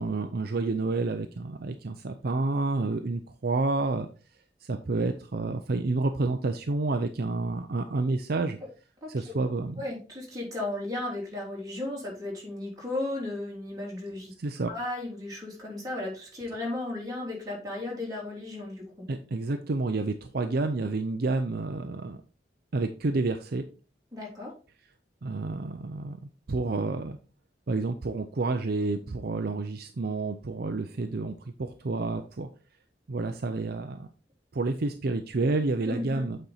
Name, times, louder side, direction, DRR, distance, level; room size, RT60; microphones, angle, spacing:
voice 1, 0.0-4.1 4.7-8.6 9.1-9.8 14.4-14.7 19.1-22.2 22.7-23.6 25.2-26.2 26.5-27.2 27.7-32.5 33.1-34.1 34.5-36.4, right 3 dB, 60° right, 7 dB, 0.6 m, -29 dB
voice 2, 9.0-9.4 9.8-14.3 14.7-19.1 20.3-20.4 24.1-24.5 35.9-36.2, left 2 dB, 20° right, -3 dB, 3.5 m, -35 dB
8.3 x 4.4 x 4.0 m, 0.34 s
head